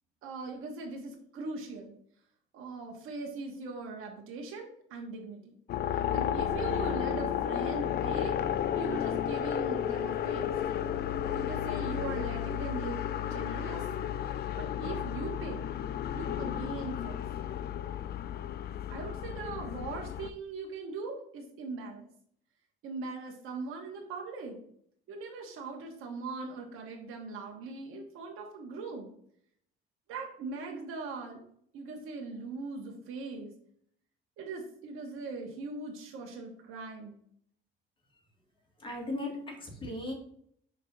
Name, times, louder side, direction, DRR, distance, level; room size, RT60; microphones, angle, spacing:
voice 1, 0.2-1.9 2.5-5.5 5.9-8.4 8.7-10.5 11.3-13.9 14.6-15.6 16.1-17.2 18.9-22.1 22.8-24.6 25.1-29.1 30.1-31.4 31.7-33.5 34.4-37.2, right 3 dB, 85° right, 1 dB, 1.1 m, -40 dB
sound 1, 5.7-20.3, left 10 dB, 50° left, 0.4 m, -33 dB
voice 2, 38.8-40.1, left 1 dB, 25° left, 0 dB, 1.8 m, -37 dB
5.3 x 3.4 x 5.2 m, 0.66 s
cardioid pair, 130°, 21 cm